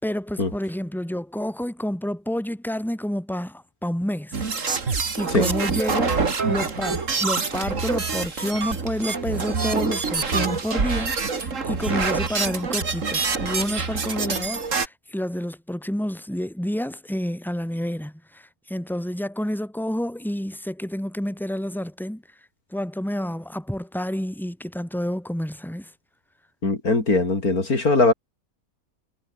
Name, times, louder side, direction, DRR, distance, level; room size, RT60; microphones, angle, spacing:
voice 1, 0.0-4.4 4.7-6.2 6.5-22.2 22.7-25.9, equal, ahead, 4.2 m, -29 dB
sound 1, 4.3-14.9, right 4 dB, 55° right, 2.6 m, -26 dB
voice 2, 26.6-28.1, left 3 dB, 75° left, 4.9 m, -20 dB
omnidirectional pair, 1.6 m